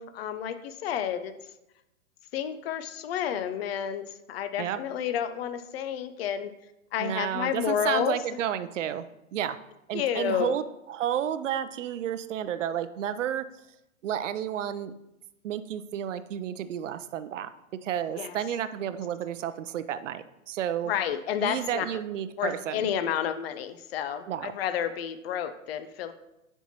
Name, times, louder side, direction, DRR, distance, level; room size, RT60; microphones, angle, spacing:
voice 1, 0.0-1.3 2.3-6.5 6.9-8.2 9.9-10.6 18.2-18.4 20.9-21.9 22.4-26.1, left 9 dB, 50° left, 11 dB, 0.6 m, -30 dB
voice 2, 7.0-9.1 9.3-9.6 9.9-13.5 14.0-14.9 15.4-17.5 17.8-20.9 21.4-22.9 24.3-24.5, right 10 dB, 65° right, 12 dB, 0.6 m, -31 dB
9.8 x 4.6 x 2.8 m, 0.89 s
hypercardioid pair, 130°, 41 cm